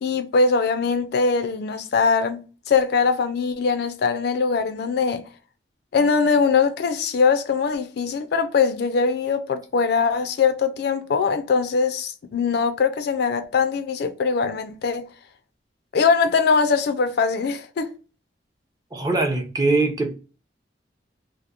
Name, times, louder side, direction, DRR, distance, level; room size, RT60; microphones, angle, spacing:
voice 1, 0.0-2.4 2.7-5.2 5.9-15.1 15.9-17.9, left 5 dB, 60° left, 0.3 m, -21 dB
voice 2, 18.9-20.1, right 3 dB, 20° right, 0.5 m, -22 dB
2.8 x 2.0 x 2.3 m
head